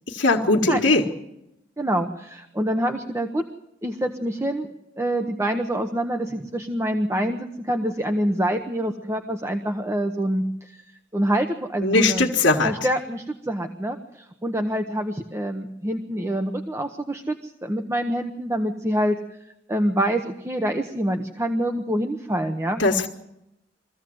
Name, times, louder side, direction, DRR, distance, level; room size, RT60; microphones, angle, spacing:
voice 1, 0.1-1.0 11.8-12.7 22.8-23.1, left 2 dB, 75° left, -1 dB, 1.6 m, -19 dB
voice 2, 1.8-3.4 3.8-4.7 5.0-10.8 11.1-12.3 12.6-19.2 19.7-22.8, right 1 dB, 15° right, 5 dB, 0.9 m, -26 dB
23.0 x 15.5 x 7.8 m, 0.87 s
head